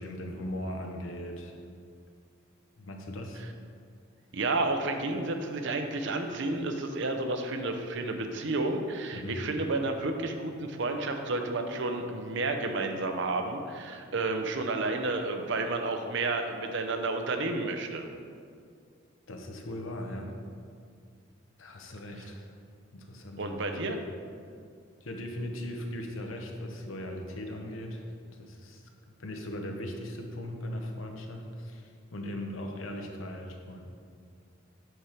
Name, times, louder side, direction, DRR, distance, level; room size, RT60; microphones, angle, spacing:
voice 1, 0.0-1.6 2.8-3.4 9.1-9.4 19.3-20.3 21.6-22.5 22.9-24.0 25.0-28.1 28.4-28.8 29.2-33.8, left 1 dB, 85° left, 2 dB, 0.9 m, -39 dB
voice 2, 4.3-18.1 23.4-24.0, right 2 dB, 65° right, 5 dB, 0.7 m, -31 dB
7.9 x 4.9 x 4.5 m, 2.2 s
head